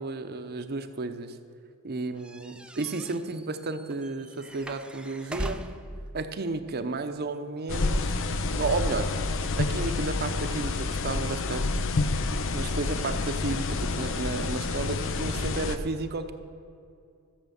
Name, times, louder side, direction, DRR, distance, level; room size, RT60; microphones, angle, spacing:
voice 1, 0.0-1.4 1.8-5.6 6.1-9.1 9.5-11.7 12.5-16.3, right 3 dB, 50° right, 9 dB, 0.8 m, -32 dB
sound 1, 2.2-6.0, right 1 dB, 5° right, 0.5 m, -39 dB
sound 2, 7.7-15.8, left 3 dB, 60° left, 0.7 m, -28 dB
14.5 x 7.4 x 7.0 m, 2.4 s
head